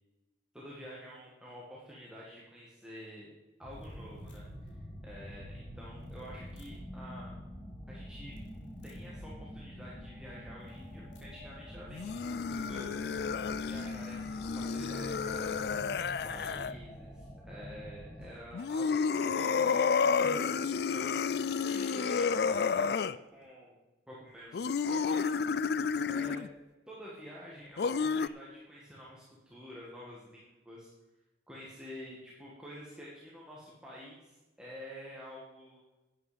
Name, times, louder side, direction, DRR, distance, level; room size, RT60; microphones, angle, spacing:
voice 1, 0.5-3.3 3.6-4.5 4.7-7.3 7.9-8.3 8.8-13.0 13.6-15.6 15.9-21.1 21.6-23.8 24.1-25.6 26.1-26.4 26.9-30.9 31.5-35.8, equal, 5° right, -6 dB, 1.8 m, -48 dB
sound 1, 3.6-18.4, equal, 25° left, 3.7 m, -46 dB
sound 2, 3.7-4.9 6.0-6.9 8.3-9.4 10.6-11.5, left 1 dB, 85° left, 1.7 m, -59 dB
sound 3, 11.9-16.7 18.5-23.2 24.5-26.5 27.8-28.3, left 5 dB, 60° left, 0.4 m, -31 dB
11.0 x 9.5 x 5.1 m, 1.1 s
head